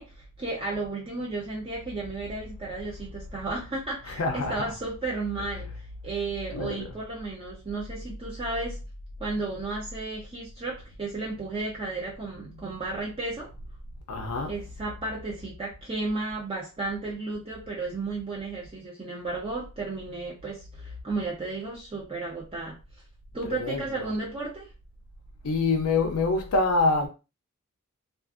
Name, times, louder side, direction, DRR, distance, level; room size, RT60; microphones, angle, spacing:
voice 1, 0.0-8.8 9.2-13.5 14.5-22.8 23.3-24.7, right 3 dB, 25° right, 0.6 m, -33 dB
voice 2, 4.1-4.7 6.5-7.0 14.1-14.5 23.5-24.1 25.4-27.1, left 3 dB, 90° left, 0.5 m, -26 dB
2.4 x 2.4 x 2.4 m
head